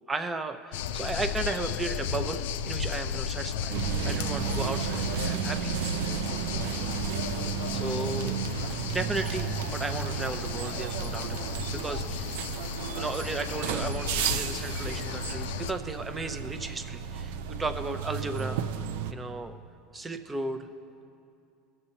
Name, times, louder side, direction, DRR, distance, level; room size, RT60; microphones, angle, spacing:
voice 1, 0.1-3.8 4.0-5.8 6.6-6.9 7.7-8.4 8.9-12.3 13.0-18.6 19.1-19.6 19.9-20.7, right 2 dB, 20° right, 9 dB, 0.6 m, -35 dB
sound 1, 0.7-15.7, left 8 dB, 85° left, 0.3 m, -35 dB
sound 2, 3.7-19.1, right 7 dB, 80° right, 0.4 m, -33 dB
17.5 x 6.7 x 2.9 m, 2.5 s
supercardioid pair, 105°, 0 cm